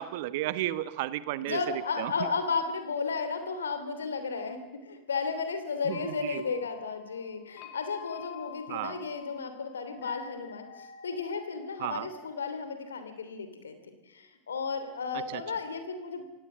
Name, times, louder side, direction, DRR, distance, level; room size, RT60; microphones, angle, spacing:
voice 1, 0.0-1.6 2.0-2.1 5.9-6.4 8.7-9.0 11.8-12.1 15.3-15.4, right 15 dB, 60° right, 16 dB, 1.1 m, -33 dB
voice 2, 1.4-16.2, left 5 dB, 80° left, 9 dB, 3.0 m, -34 dB
sound 1, 5.9-12.3, left 9 dB, 50° left, 2.5 m, -50 dB
27.5 x 17.0 x 7.5 m, 0.99 s
figure-of-eight pair, 80°, 0 cm